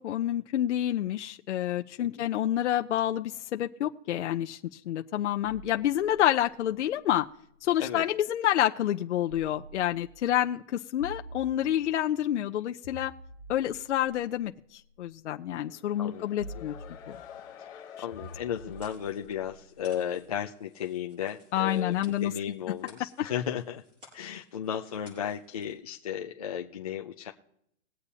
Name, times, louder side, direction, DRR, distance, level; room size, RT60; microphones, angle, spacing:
voice 1, 0.0-7.3 7.6-13.1 13.5-16.7 21.5-22.3, left 12 dB, 70° left, 5 dB, 0.7 m, -28 dB
sound 1, 5.4-8.2 9.3-10.3 11.0-12.1 12.8-15.1 16.4-17.5 18.1-20.3, right 1 dB, 65° right, 5.2 m, -48 dB
sound 2, 15.6-20.0, left 9 dB, 10° left, 0.9 m, -49 dB
voice 2, 17.6-23.8 24.1-27.3, left 9 dB, 30° left, 1 dB, 0.4 m, -35 dB
sound 3, 18.2-25.8, left 3 dB, 15° right, 5.8 m, -59 dB
21.5 x 8.2 x 2.8 m, 0.74 s
hypercardioid pair, 175°, 36 cm